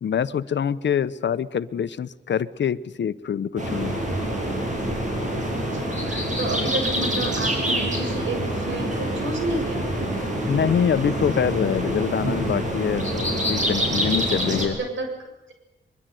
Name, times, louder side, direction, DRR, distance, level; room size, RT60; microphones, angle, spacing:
voice 1, 0.0-3.9 10.5-14.8, left 8 dB, 70° left, 14 dB, 1.0 m, -25 dB
sound 1, 3.6-14.6, right 1 dB, 40° right, 7.8 m, -26 dB
voice 2, 5.7-9.9 14.6-15.1, right 2 dB, 85° right, 4 dB, 7.4 m, -30 dB
23.5 x 23.0 x 9.4 m, 0.97 s
wide cardioid pair, 110°, 19 cm